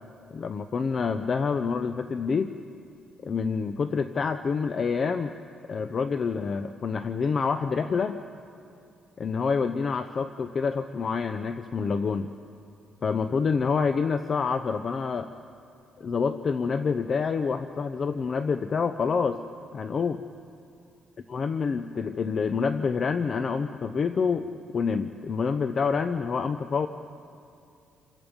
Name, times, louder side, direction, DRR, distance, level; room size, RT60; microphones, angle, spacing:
voice 1, 0.3-2.5 3.2-5.4 5.7-8.2 9.2-12.3 13.0-15.3 16.0-19.4 19.7-20.2 21.3-26.9, left 5 dB, 40° left, 9 dB, 0.7 m, -27 dB
28.5 x 26.5 x 5.3 m, 2.5 s
cardioid pair, 135°, 0 cm